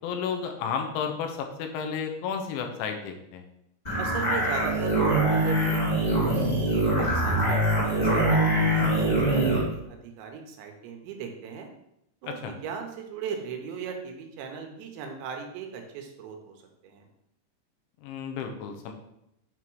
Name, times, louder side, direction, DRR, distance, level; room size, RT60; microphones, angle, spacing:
voice 1, 0.0-3.5 12.2-12.5 18.0-18.9, left 6 dB, 85° left, 4 dB, 3.2 m, -32 dB
sound 1, 3.8-9.6, right 1 dB, 25° left, 0.8 m, -23 dB
voice 2, 4.0-11.7 12.2-16.5 16.8-17.1, right 6 dB, 80° right, 4 dB, 3.1 m, -38 dB
8.6 x 3.6 x 4.6 m, 0.81 s
omnidirectional pair, 5.3 m